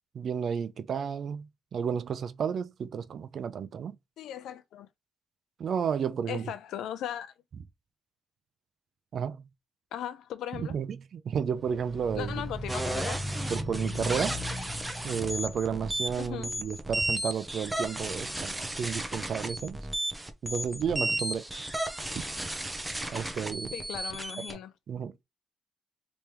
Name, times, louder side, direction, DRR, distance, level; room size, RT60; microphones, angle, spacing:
voice 1, 0.1-1.5 1.7-4.0 5.6-6.5 9.1-9.4 10.7-12.3 13.5-14.4 15.0-19.8 20.4-21.5 23.1-23.7 24.9-25.1, right 7 dB, 55° right, 0.5 m, -32 dB
voice 2, 4.2-4.9 6.3-7.3 9.9-10.8 12.1-13.2 16.2-16.5 23.7-24.7, left 10 dB, 80° left, 0.5 m, -37 dB
sound 1, 11.6-16.5, equal, 15° left, 1.9 m, -37 dB
sound 2, 12.7-24.5, right 1 dB, 10° right, 0.8 m, -34 dB
3.4 x 3.1 x 3.0 m
cardioid pair, 90°, 0 cm